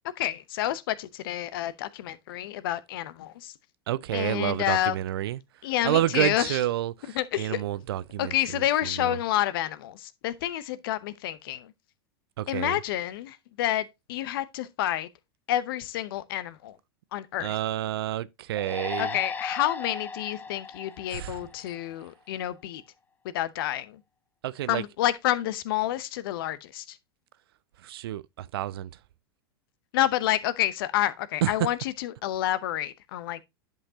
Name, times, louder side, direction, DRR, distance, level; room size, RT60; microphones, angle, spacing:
voice 1, 0.2-3.5 4.1-4.9 5.6-6.6 7.1-7.6 8.2-11.7 12.5-15.1 15.5-16.8 17.1-17.6 19.0-22.8 23.3-24.0 24.7-27.0 29.9-33.4, left 13 dB, 65° left, 0.8 m, -29 dB
voice 2, 3.9-5.4 5.8-9.2 12.4-12.8 17.4-19.2 21.1-21.5 24.4-24.8 27.8-28.9 31.4-31.5, right 13 dB, 70° right, 0.5 m, -29 dB
sound 1, 18.6-22.0, left 4 dB, 15° left, 0.6 m, -36 dB
10.5 x 5.6 x 2.8 m
hypercardioid pair, 95°, 13 cm